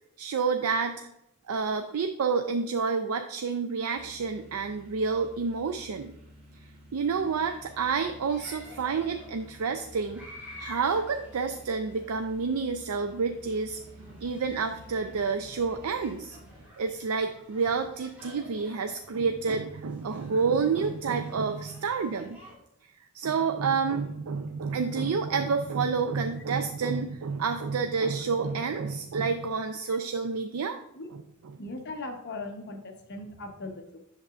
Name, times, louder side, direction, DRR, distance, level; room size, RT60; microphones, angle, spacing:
voice 1, 0.2-1.1 1.5-6.1 6.9-10.2 10.6-13.8 14.2-16.4 16.8-22.4 23.1-30.8 31.1-31.2, right 5 dB, 90° right, 6 dB, 0.4 m, -29 dB
sound 1, 3.9-16.7, right 1 dB, 50° right, 2.4 m, -51 dB
sound 2, 7.1-22.5, left 1 dB, 5° right, 2.7 m, -51 dB
voice 2, 31.6-34.0, left 2 dB, 55° left, 4 dB, 0.9 m, -39 dB
8.1 x 6.7 x 2.4 m, 0.81 s
head